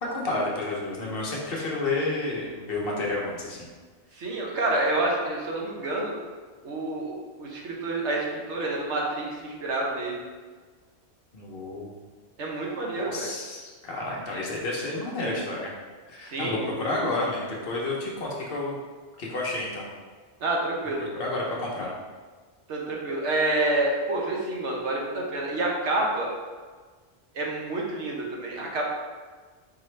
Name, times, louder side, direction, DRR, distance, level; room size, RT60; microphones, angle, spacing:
voice 1, 0.0-3.7 11.3-12.0 12.9-15.7 16.1-18.8 19.2-19.9 21.0-21.9, left 2 dB, 55° left, -3 dB, 0.9 m, -30 dB
voice 2, 4.1-6.2 6.6-10.2 12.4-13.3 14.3-14.4 16.2-17.1 20.4-21.0 22.7-26.3 27.3-28.8, right 2 dB, 75° right, -2 dB, 1.1 m, -28 dB
4.6 x 2.9 x 3.2 m, 1.4 s
omnidirectional pair, 1.2 m